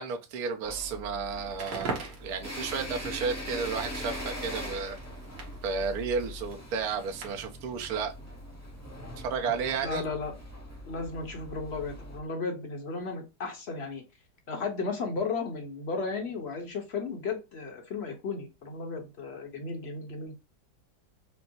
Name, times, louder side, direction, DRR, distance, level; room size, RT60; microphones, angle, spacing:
voice 1, 0.0-5.0 5.6-8.1 9.2-10.0, right 5 dB, 65° right, 1.1 m, -32 dB
sound 1, 0.6-12.2, equal, 15° left, 0.6 m, -41 dB
Crackle, 1.5-7.6, right 4 dB, 85° right, 1.8 m, -43 dB
voice 2, 9.8-10.3 10.9-14.0 14.5-20.4, left 4 dB, 45° left, 1.1 m, -34 dB
5.3 x 2.0 x 2.9 m
omnidirectional pair, 1.9 m